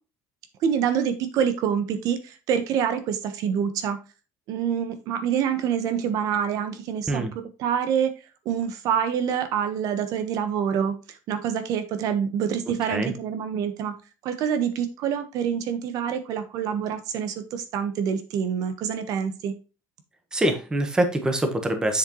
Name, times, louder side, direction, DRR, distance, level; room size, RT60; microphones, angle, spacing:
voice 1, 0.6-4.0 4.5-8.1 8.4-13.9 14.2-19.5, right 8 dB, 65° right, 9 dB, 1.2 m, -26 dB
voice 2, 20.3-22.0, right 1 dB, 10° right, 6 dB, 1.2 m, -24 dB
7.6 x 6.6 x 3.1 m, 0.32 s
cardioid pair, 150°, 7 cm